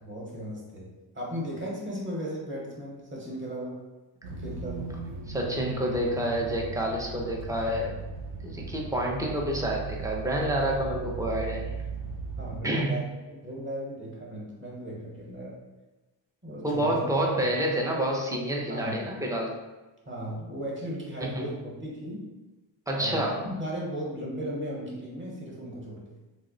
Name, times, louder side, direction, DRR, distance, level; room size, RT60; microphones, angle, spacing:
voice 1, 0.0-3.8 4.3-4.9 12.4-15.6 16.4-17.0 18.7-19.1 20.1-22.3 23.0-26.2, equal, 25° right, -4 dB, 0.7 m, -36 dB
sound 1, 4.2-12.6, right 4 dB, 85° right, 0.6 m, -37 dB
voice 2, 5.3-7.9 8.4-11.7 12.6-13.0 16.6-19.5 21.4-21.5 22.9-23.4, right 1 dB, 10° right, -1 dB, 0.3 m, -28 dB
3.0 x 2.0 x 3.7 m, 1.1 s
wide cardioid pair, 145°, 46 cm